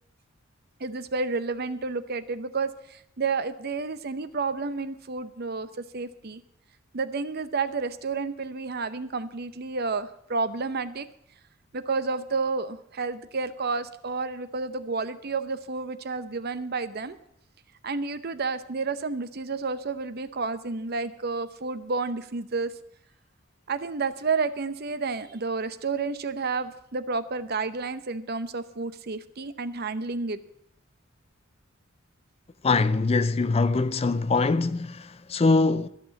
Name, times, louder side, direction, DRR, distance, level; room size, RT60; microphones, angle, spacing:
voice 1, 0.8-5.7 5.9-6.4 6.9-11.1 11.7-17.2 17.8-22.7 23.7-30.4, right 4 dB, 50° right, 0.7 m, -30 dB
voice 2, 32.6-35.9, left 3 dB, 30° left, 0.4 m, -23 dB
14.0 x 6.1 x 8.5 m
head